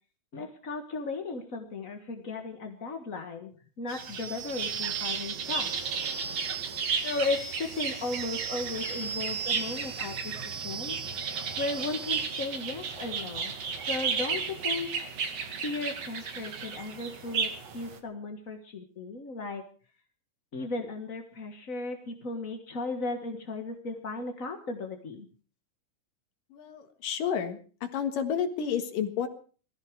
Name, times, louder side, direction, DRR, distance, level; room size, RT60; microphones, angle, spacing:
voice 1, 0.3-5.7 7.0-10.9 11.6-13.5 13.9-14.9 15.6-19.7 20.5-25.3, left 3 dB, 40° left, 5 dB, 1.2 m, -35 dB
sound 1, 3.9-18.0, right 6 dB, 55° right, 3.1 m, -33 dB
voice 2, 26.5-29.3, left 8 dB, 85° left, 8 dB, 3.3 m, -31 dB
20.5 x 15.0 x 4.7 m, 0.39 s
omnidirectional pair, 3.8 m